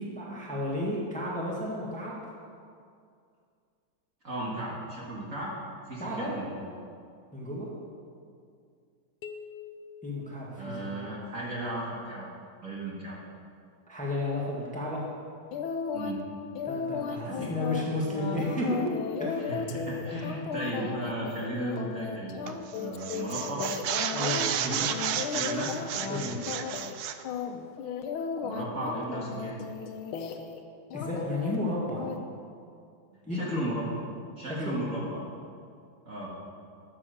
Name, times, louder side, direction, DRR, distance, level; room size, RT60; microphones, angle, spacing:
voice 1, 0.2-2.2 6.0-6.3 7.3-7.7 10.0-11.0 13.9-15.0 16.6-18.9 19.2-19.5 24.1-24.8 26.1-26.4 30.9-32.1 33.2-33.6 34.7-34.8 35.1-35.2, left 1 dB, 5° left, -4 dB, 1.8 m, -32 dB
voice 2, 4.2-5.5 5.9-6.6 10.5-12.3 12.6-13.2 15.9-16.2 17.2-17.5 19.4-22.5 22.7-23.7 24.6-24.9 25.3-26.3 28.4-29.5 33.3-33.9 34.4-35.2 36.0-36.3, right 1 dB, 40° right, -4 dB, 2.1 m, -35 dB
sound 1, 9.2-11.2, left 6 dB, 65° left, 1.1 m, -46 dB
sound 2, 15.5-16.2 16.5-24.5 24.9-26.2 26.5-27.0 27.2-30.6 30.9-31.6 32.0-32.2, left 6 dB, 90° left, 1.7 m, -35 dB
sound 3, 22.5-22.7 23.0-27.2, right 9 dB, 75° right, 0.9 m, -32 dB
12.5 x 7.6 x 6.6 m, 2.3 s
omnidirectional pair, 2.2 m